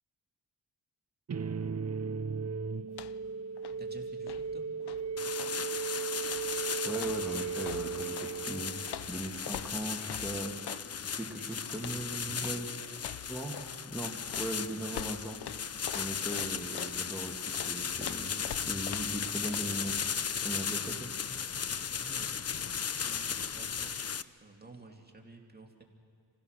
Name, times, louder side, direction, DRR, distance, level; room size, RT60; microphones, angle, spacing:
sound 1, 1.3-9.2, right 6 dB, 40° right, 0.6 m, -36 dB
sound 2, 2.9-3.3 3.6-5.6 6.2-6.6 6.9-8.3 8.9-10.9 11.7-12.1 12.4-12.6 13.0-13.8 14.3-17.0 17.5-19.3 19.5-19.7, left 10 dB, 75° left, 0.6 m, -45 dB
voice 1, 3.8-4.6 21.9-24.1 24.4-25.8, right 2 dB, 25° right, 1 dB, 2.6 m, -52 dB
sound 3, 5.2-24.2, left 7 dB, 40° left, 0.6 m, -36 dB
voice 2, 6.8-8.8 9.1-10.8 11.2-12.7 13.3-13.6 13.9-15.4 15.9-20.1 20.4-21.1, right 1 dB, 5° right, -2 dB, 2.1 m, -39 dB
27.5 x 16.0 x 6.6 m, 2.2 s
cardioid pair, 65°, 40 cm